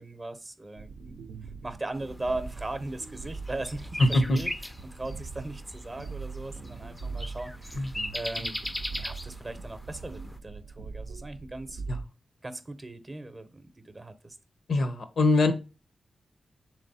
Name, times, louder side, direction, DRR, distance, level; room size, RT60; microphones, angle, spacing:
voice 1, 0.0-1.3 1.6-4.5 4.8-8.6 9.0-11.8 12.4-14.4, right 2 dB, 35° right, 0.7 m, -38 dB
sound 1, 0.8-12.0, right 4 dB, 85° right, 0.4 m, -42 dB
sound 2, 1.9-10.4, left 1 dB, 15° left, 0.4 m, -39 dB
voice 2, 4.0-4.4 7.7-7.9 11.9-12.0 14.7-15.5, left 2 dB, 70° left, 0.6 m, -23 dB
3.4 x 3.1 x 4.0 m
cardioid pair, 50°, 0 cm